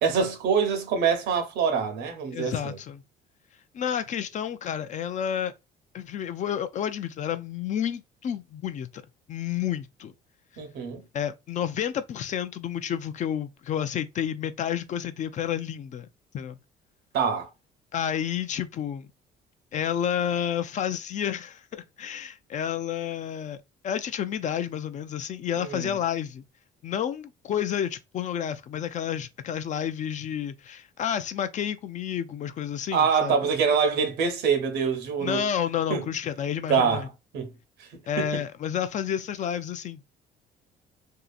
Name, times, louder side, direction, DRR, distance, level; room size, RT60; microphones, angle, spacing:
voice 1, 0.0-2.8 10.6-11.0 17.1-17.5 25.6-25.9 32.9-35.4 35.9-36.1 36.7-37.5 37.8-37.9 38.2-38.4, right 6 dB, 80° right, 0.8 m, -25 dB
voice 2, 2.3-3.0 3.7-5.5 5.9-9.0 9.3-10.1 11.1-16.1 16.3-16.6 17.9-19.1 19.7-23.6 23.8-26.4 26.8-33.4 35.2-37.1 38.1-40.0, left 9 dB, 45° left, 0.4 m, -30 dB
2.7 x 2.4 x 2.3 m
cardioid pair, 110°, 17 cm